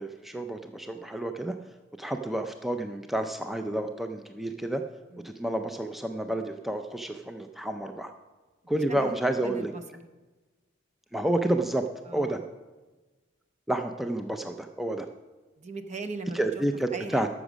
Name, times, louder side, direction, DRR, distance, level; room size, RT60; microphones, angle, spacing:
voice 1, 0.0-1.5 2.0-4.8 5.2-8.1 8.7-9.7 11.1-11.8 12.1-12.4 13.7-15.1 16.3-17.3, right 1 dB, ahead, 5 dB, 0.4 m, -30 dB
voice 2, 9.4-10.0 12.0-12.4 15.6-16.6 16.9-17.2, right 3 dB, 40° right, 9 dB, 0.7 m, -39 dB
13.0 x 6.1 x 6.1 m, 1.2 s
head